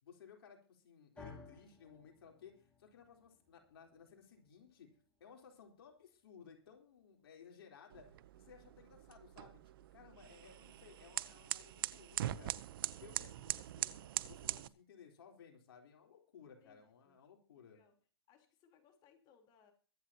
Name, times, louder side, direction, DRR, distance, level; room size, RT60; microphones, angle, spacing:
voice 1, 0.0-4.9 5.2-12.5 12.9-17.8, left 7 dB, 70° left, 2 dB, 4.0 m, -59 dB
sound 1, 1.2-9.4, left 3 dB, 10° left, 7.9 m, -61 dB
sound 2, 7.9-14.7, right 13 dB, 60° right, 0.8 m, -42 dB
voice 2, 10.1-10.8 16.6-17.2 17.5-18.0 18.3-19.7, left 7 dB, 35° left, 3 dB, 3.9 m, -69 dB
23.0 x 10.0 x 2.9 m, 0.38 s
hypercardioid pair, 130°, 13 cm